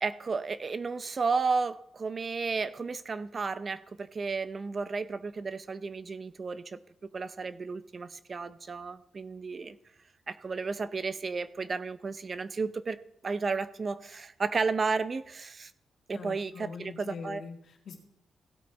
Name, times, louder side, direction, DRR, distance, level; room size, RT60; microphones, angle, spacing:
voice 1, 0.0-6.8 7.1-9.8 10.3-13.0 13.2-15.7 16.1-17.4, right 4 dB, 40° right, 14 dB, 0.6 m, -33 dB
voice 2, 16.1-18.0, left 5 dB, 65° left, 3 dB, 2.3 m, -43 dB
16.5 x 8.3 x 3.5 m, 0.79 s
cardioid pair, 100°, 0 cm